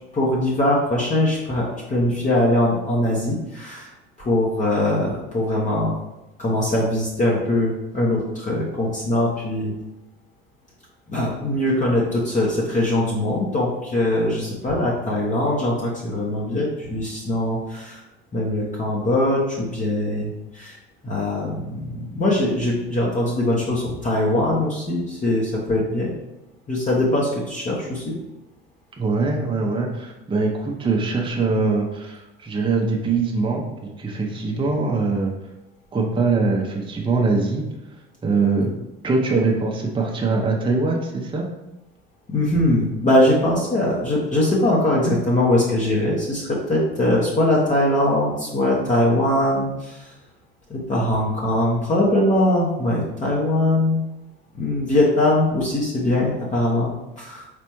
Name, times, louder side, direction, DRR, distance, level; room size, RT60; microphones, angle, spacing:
voice 1, 0.1-3.9 4.2-5.9 6.4-9.7 11.1-18.0 18.3-20.8 21.0-26.1 26.7-28.2 42.3-50.1 50.7-54.0 54.5-57.5, left 1 dB, 25° left, -4 dB, 1.0 m, -21 dB
voice 2, 29.0-35.3 35.9-37.6 38.2-38.7 39.0-41.5, right 3 dB, 15° right, -1 dB, 0.7 m, -22 dB
4.1 x 3.5 x 3.0 m, 0.98 s
hypercardioid pair, 70°, 31 cm